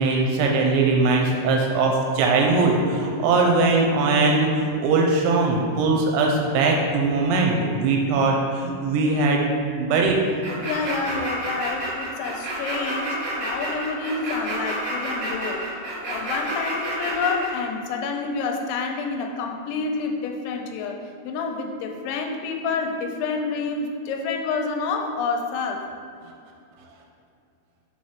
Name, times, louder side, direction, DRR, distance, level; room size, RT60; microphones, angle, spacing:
voice 1, 0.0-9.4 9.8-10.2, right 3 dB, 85° right, 0 dB, 3.0 m, -20 dB
sound 1, 10.4-17.5, right 1 dB, 60° right, 1.6 m, -29 dB
voice 2, 10.7-15.7 16.1-25.9, left 4 dB, 90° left, 3 dB, 2.9 m, -28 dB
6.0 x 4.8 x 4.4 m, 2.5 s
omnidirectional pair, 5.2 m